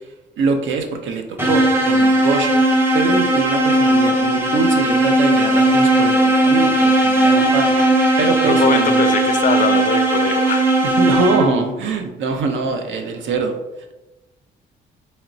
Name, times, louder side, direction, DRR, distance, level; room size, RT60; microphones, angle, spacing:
voice 1, 0.4-2.6 2.9-7.7 8.2-9.0 10.8-13.6, right 3 dB, 70° right, 5 dB, 0.6 m, -23 dB
sound 1, 1.4-11.7, right 1 dB, 10° right, 0.7 m, -16 dB
voice 2, 8.5-10.7, left 6 dB, 40° left, 8 dB, 0.4 m, -22 dB
4.2 x 3.0 x 2.6 m, 1.0 s
cardioid pair, 90°, 20 cm